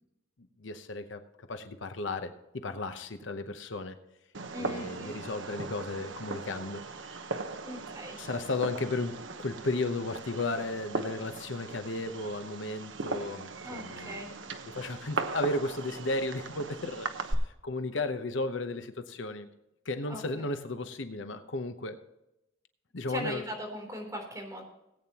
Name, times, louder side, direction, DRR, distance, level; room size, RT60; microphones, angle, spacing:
voice 1, 0.6-2.3 2.6-4.0 4.6-6.8 7.1-7.2 8.2-14.3 14.6-19.5 19.8-22.0 22.9-23.4, left 2 dB, 70° left, 8 dB, 0.9 m, -34 dB
Fireworks, 4.3-17.3, right 3 dB, 75° right, 1.0 m, -38 dB
voice 2, 4.5-5.2 7.6-8.2 13.6-14.3 20.1-20.4 23.1-24.6, equal, 15° right, 0 dB, 3.5 m, -39 dB
18.5 x 8.7 x 2.9 m, 0.88 s
head